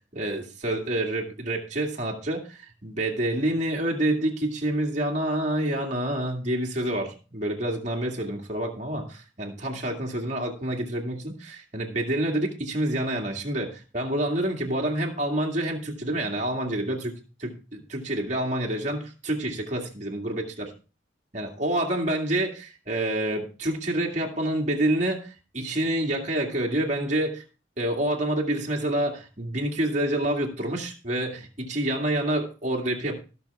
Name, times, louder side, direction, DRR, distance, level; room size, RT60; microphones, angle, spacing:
voice 1, 0.1-20.4 21.3-27.4 27.8-33.1, right 1 dB, 40° right, 0 dB, 2.2 m, -28 dB
17.0 x 6.4 x 3.5 m, 0.34 s
head